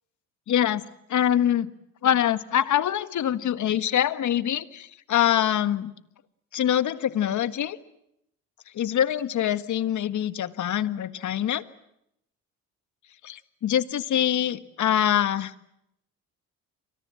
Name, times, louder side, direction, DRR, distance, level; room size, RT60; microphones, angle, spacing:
voice 1, 0.5-0.8 1.1-1.7 2.0-5.9 6.5-7.8 8.7-11.6 13.2-15.5, left 10 dB, 55° left, 13 dB, 1.7 m, -24 dB
29.5 x 25.0 x 7.7 m, 0.80 s
supercardioid pair, 80°, 35 cm